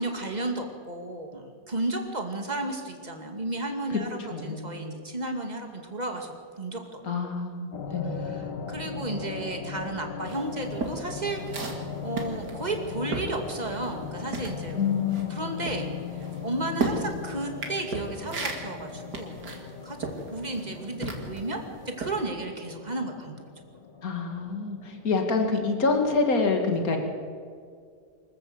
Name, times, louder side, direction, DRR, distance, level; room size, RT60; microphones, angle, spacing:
voice 1, 0.0-7.0 8.0-11.4 12.0-15.0 15.3-15.9 16.4-19.4 19.8-21.6 22.0-23.4, right 2 dB, 25° right, 3 dB, 2.3 m, -33 dB
voice 2, 4.3-4.8 7.0-8.1 14.8-15.4 24.0-27.0, left 4 dB, 50° left, 4 dB, 2.7 m, -26 dB
sound 1, 7.7-26.4, left 6 dB, 70° left, 2.3 m, -39 dB
sound 2, 10.3-14.0 14.3-21.5 22.0-22.2, right 3 dB, 65° right, 2.9 m, -34 dB
25.0 x 14.0 x 8.0 m, 2.2 s
omnidirectional pair, 1.9 m